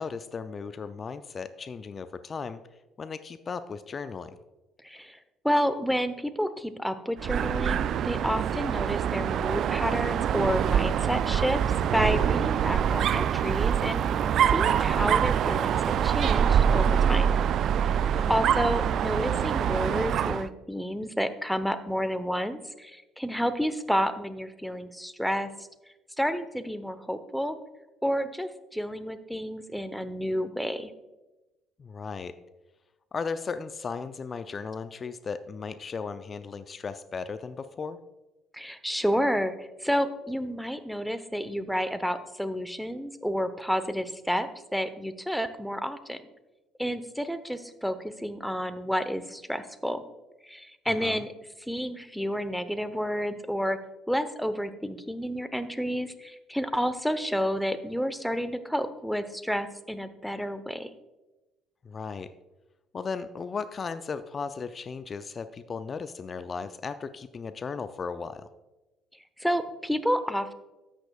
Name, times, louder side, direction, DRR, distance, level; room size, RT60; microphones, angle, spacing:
voice 1, 0.0-2.6 3.0-4.4 18.1-18.5 31.8-32.3 33.1-38.0 50.9-51.2 61.8-62.3 62.9-68.5, left 5 dB, 40° left, 12 dB, 0.5 m, -36 dB
voice 2, 4.8-5.2 5.4-11.6 11.9-14.0 14.5-17.3 17.8-18.0 18.3-25.5 26.2-27.6 28.0-30.9 38.5-46.2 46.8-50.0 50.4-51.3 51.6-53.8 54.1-60.9 69.4-70.5, equal, ahead, 11 dB, 0.9 m, -30 dB
Dog, 7.2-20.5, right 8 dB, 55° right, 0.3 m, -25 dB
13.5 x 8.9 x 2.4 m, 1.1 s
hypercardioid pair, 55°, 0 cm